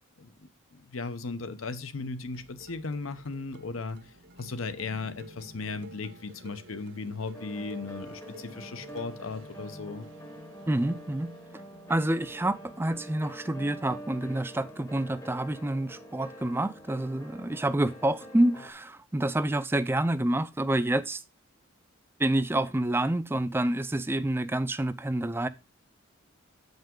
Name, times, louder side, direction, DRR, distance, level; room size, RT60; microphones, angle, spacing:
voice 1, 0.2-10.1, left 4 dB, 85° left, 0.9 m, -37 dB
sound 1, 2.1-15.9, right 1 dB, 70° right, 1.4 m, -54 dB
sound 2, 2.3-9.3, right 1 dB, 55° right, 0.7 m, -52 dB
sound 3, 7.3-18.7, equal, 15° left, 0.8 m, -46 dB
voice 2, 10.7-11.3 11.9-21.2 22.2-25.5, right 1 dB, 10° right, 0.3 m, -28 dB
8.0 x 5.4 x 3.7 m
head